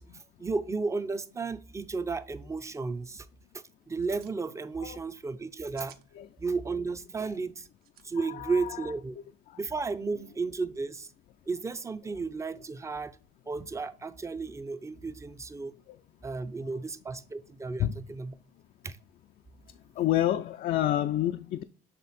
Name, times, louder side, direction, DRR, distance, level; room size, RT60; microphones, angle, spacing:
voice 1, 0.0-3.3 3.5-5.9 6.4-7.7 8.0-9.2 9.6-11.1 11.5-13.1 13.5-15.7 16.2-18.3 18.8-19.0, right 4 dB, 15° right, 0.5 m, -33 dB
sound 1, 1.9-2.0 2.2-2.4 2.7-3.0 3.8-4.4 5.4-6.1 7.8-8.1, right 10 dB, 65° right, 0.7 m, -55 dB
voice 2, 8.2-8.9 9.5-9.6 15.9-16.0 17.8-18.0 19.9-21.6, left 13 dB, 60° left, 0.4 m, -29 dB
7.6 x 3.4 x 4.1 m
cardioid pair, 110°, 17 cm